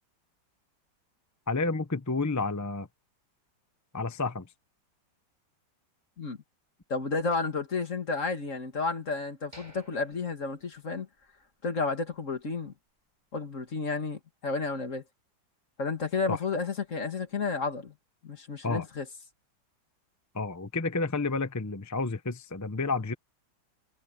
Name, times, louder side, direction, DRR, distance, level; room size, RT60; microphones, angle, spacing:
voice 1, 1.5-2.9 3.9-4.5 16.3-16.4 18.6-18.9 20.3-23.1, left 3 dB, 20° left, 0.4 m, -30 dB
voice 2, 6.9-11.1 11.6-12.7 13.3-15.0 15.8-17.9 18.2-19.1, left 4 dB, 45° left, 2.4 m, -31 dB
sound 1, 9.5-11.5 11.8-11.9 12.4-12.6, right 1 dB, 20° right, 7.3 m, -55 dB
omnidirectional pair, 2.0 m